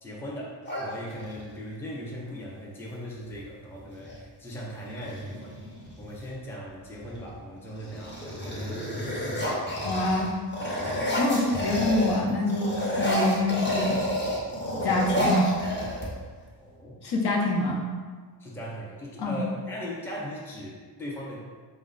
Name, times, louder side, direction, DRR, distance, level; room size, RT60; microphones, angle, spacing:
voice 1, 0.0-5.6 6.0-9.3 16.6-17.0 18.4-21.4, equal, 5° left, -4 dB, 0.6 m, -39 dB
sound 1, 0.6-1.6 3.3-3.4 3.7-4.2 4.8-6.3 6.9-7.3 7.7-12.2 12.5-16.4, equal, 25° left, 0.8 m, -30 dB
voice 2, 9.8-10.3 11.2-14.0 14.8-15.7 17.0-17.9 19.2-19.4, left 2 dB, 70° left, -1 dB, 0.8 m, -26 dB
4.1 x 2.1 x 3.9 m, 1.5 s
wide cardioid pair, 115°, 42 cm